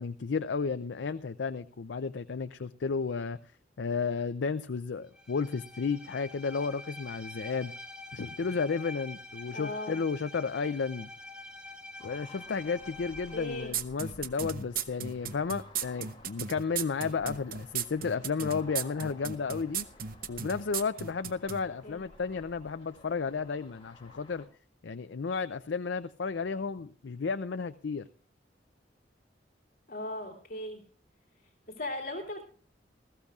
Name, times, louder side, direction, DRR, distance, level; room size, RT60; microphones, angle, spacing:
voice 1, 0.0-3.4 3.8-7.7 8.1-11.1 12.0-19.9 20.3-24.5 24.8-28.1, left 5 dB, 80° left, 11 dB, 0.5 m, -33 dB
Bowed string instrument, 5.1-13.8, left 2 dB, 5° right, 2.4 m, -46 dB
voice 2, 9.5-10.0 13.3-13.7 21.8-22.0 29.9-30.8 31.8-32.4, left 1 dB, 55° left, 1 dB, 3.0 m, -37 dB
sound 1, 12.0-24.5, left 2 dB, 30° left, 2.4 m, -54 dB
sound 2, 13.7-21.6, right 8 dB, 55° right, 0.7 m, -35 dB
20.0 x 14.5 x 2.4 m, 0.43 s
head